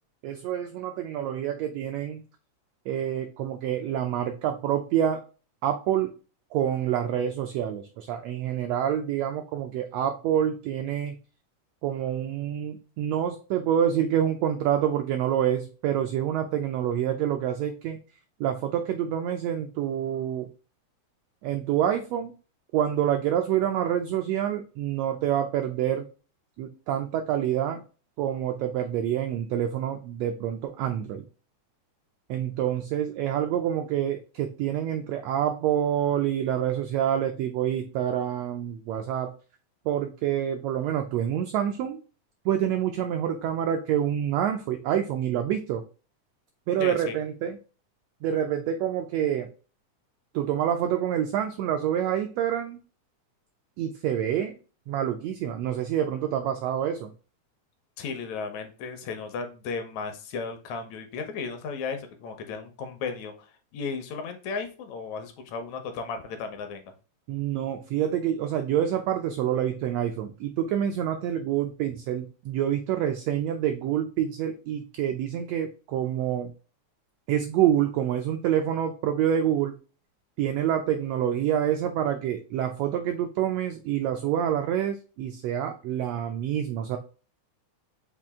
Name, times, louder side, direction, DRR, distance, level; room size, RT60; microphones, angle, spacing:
voice 1, 0.2-2.2 2.9-5.2 5.6-6.1 6.5-11.1 11.8-18.0 18.4-20.5 21.4-22.3 22.7-26.0 26.6-27.8 28.2-31.2 32.3-39.3 39.9-42.0 42.4-45.8 46.7-47.6 48.2-49.5 50.3-52.8 53.8-54.6 54.9-57.1 67.3-76.5 77.3-79.7 80.4-87.0, right 10 dB, 85° right, 5 dB, 1.4 m, -27 dB
voice 2, 46.8-47.2 58.0-66.9, left 5 dB, 75° left, 7 dB, 1.9 m, -35 dB
5.9 x 2.5 x 3.5 m, 0.35 s
omnidirectional pair, 3.5 m